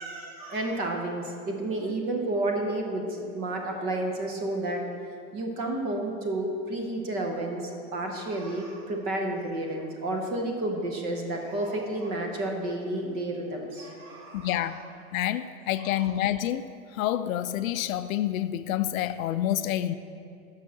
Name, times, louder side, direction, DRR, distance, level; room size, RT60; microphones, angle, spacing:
voice 1, 0.0-4.8 5.3-14.8 15.8-16.1, right 1 dB, 20° right, 0.7 m, -31 dB
voice 2, 14.3-14.8 15.1-16.6 16.9-19.9, left 12 dB, 70° left, 0.5 m, -28 dB
7.2 x 5.7 x 7.2 m
supercardioid pair, 165°, 43 cm